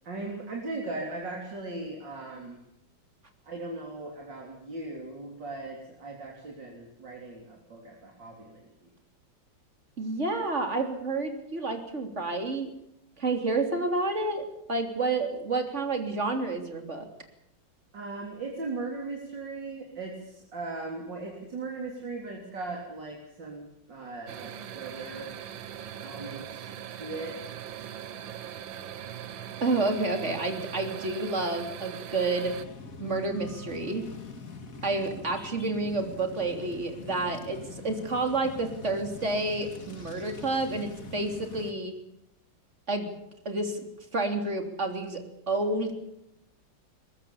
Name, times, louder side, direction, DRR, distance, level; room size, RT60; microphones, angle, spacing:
voice 1, 0.0-2.6 3.4-8.9 17.9-25.3 26.0-26.7 27.0-27.4, right 3 dB, 70° right, 0 dB, 4.2 m, -38 dB
voice 2, 10.0-12.7 13.2-17.1 29.6-32.5 33.0-34.1 34.8-41.9 42.9-43.1 43.5-43.9 44.1-45.2 45.5-46.0, right 2 dB, 40° right, 5 dB, 3.6 m, -29 dB
sound 1, 24.3-32.7, right 9 dB, 85° right, 1.9 m, -40 dB
sound 2, 32.4-41.7, left 4 dB, 50° left, 2.5 m, -44 dB
22.5 x 21.0 x 7.2 m, 0.83 s
omnidirectional pair, 2.0 m